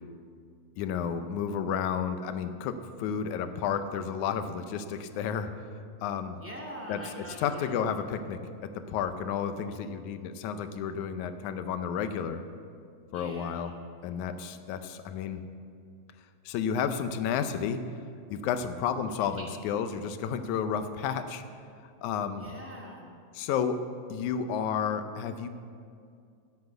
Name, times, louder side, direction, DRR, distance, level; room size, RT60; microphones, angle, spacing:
voice 1, 0.8-5.5 6.0-6.4 6.9-12.4 13.1-13.7 14.0-15.4 16.5-17.8 18.3-21.4 22.0-22.4 23.4-23.8 24.1-25.5, left 7 dB, 85° left, 10 dB, 2.1 m, -31 dB
voice 2, 6.4-7.8 13.1-13.8 19.2-19.4 22.4-23.0, equal, 5° right, -4 dB, 1.7 m, -43 dB
10.5 x 8.0 x 8.0 m, 2.4 s
omnidirectional pair, 3.4 m